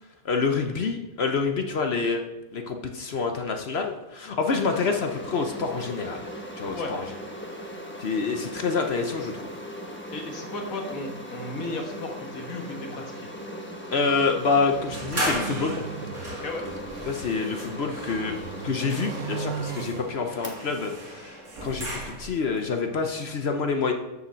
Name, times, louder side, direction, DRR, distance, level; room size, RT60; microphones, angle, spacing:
voice 1, 0.2-2.2 2.5-6.2 6.6-7.0 8.0-9.3 13.9-15.7 17.1-18.4 18.6-21.3 21.6-23.9, left 4 dB, 55° left, 5 dB, 0.9 m, -27 dB
sound 1, 4.5-23.0, equal, 10° left, 0.9 m, -39 dB
voice 2, 10.1-13.3 16.3-16.7, left 2 dB, 75° left, 2 dB, 1.9 m, -35 dB
sound 2, 14.7-17.3 17.8-20.6, right 8 dB, 65° right, 0.9 m, -38 dB
sound 3, 14.9-22.5, right 1 dB, 85° right, 2.5 m, -36 dB
6.9 x 6.9 x 6.2 m, 1.0 s
omnidirectional pair, 1.5 m